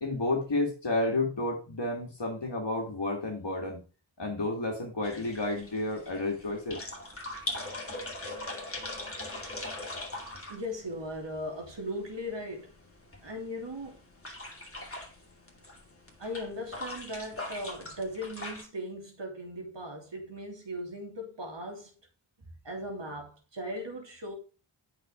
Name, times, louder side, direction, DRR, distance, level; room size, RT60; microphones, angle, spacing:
voice 1, 0.0-3.8 4.2-6.8, left 2 dB, 55° left, 2.2 m, -31 dB
sound 1, 5.0-18.6, left 2 dB, 25° left, 2.4 m, -41 dB
voice 2, 10.5-12.7 13.2-14.0 16.2-21.9 22.4-24.4, equal, 60° right, 3.0 m, -38 dB
8.5 x 6.1 x 3.7 m
cardioid pair, 50°, 50 cm